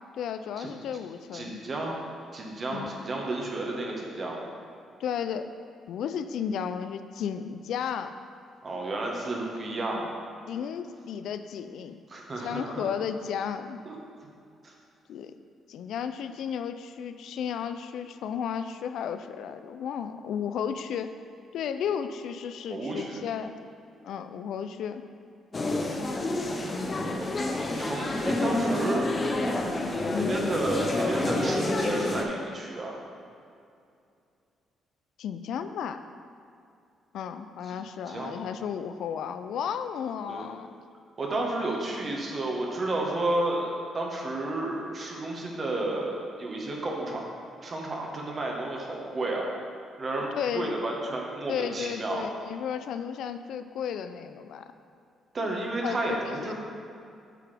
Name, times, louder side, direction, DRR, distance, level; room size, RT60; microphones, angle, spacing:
voice 1, 0.1-1.6 2.7-2.9 5.0-5.5 5.9-8.1 10.5-12.0 12.4-13.8 15.1-15.3 15.7-21.1 21.5-23.5 24.0-25.0 30.1-30.3 35.2-36.1 37.1-40.8 50.3-50.7 51.5-54.6 55.8-56.5, left 8 dB, 75° left, 10 dB, 0.3 m, -33 dB
voice 2, 1.3-2.0 2.3-4.5 8.6-10.1 12.1-12.9 13.8-14.0 14.6-14.7 22.7-23.2 27.8-29.0 30.2-33.0 37.7-37.8 38.1-38.3 40.3-40.4 41.2-47.2 47.6-49.5 50.0-52.2 55.3-56.5, right 2 dB, 40° right, -1 dB, 1.3 m, -31 dB
sound 1, 25.5-32.2, left 2 dB, 35° left, 0.7 m, -28 dB
8.3 x 5.7 x 3.4 m, 2.4 s
cardioid pair, 90°, 0 cm